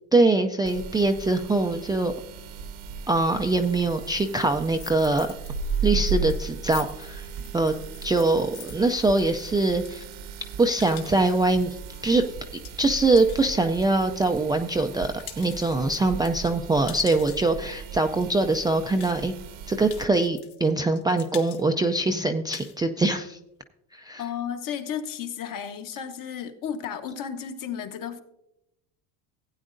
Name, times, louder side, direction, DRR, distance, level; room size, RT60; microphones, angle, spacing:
voice 1, 0.1-2.1 3.1-5.3 5.8-7.3 7.5-7.7 8.0-10.0 10.6-11.8 12.0-12.2 12.8-19.3 19.7-23.4 23.9-24.2, right 2 dB, 10° right, 4 dB, 0.3 m, -23 dB
sound 1, 0.6-20.0, right 5 dB, 70° right, 1.1 m, -36 dB
sound 2, 4.6-5.5 5.8-14.4 14.8-17.6 18.2-18.3 18.5-18.6 19.0-19.5 19.9-20.7 21.0-21.6 22.0-22.1 22.3-22.8, left 10 dB, 70° left, 1.4 m, -45 dB
voice 2, 24.2-28.2, left 8 dB, 50° left, 7 dB, 1.2 m, -33 dB
16.0 x 8.9 x 2.6 m, 0.85 s
supercardioid pair, 105°, 41 cm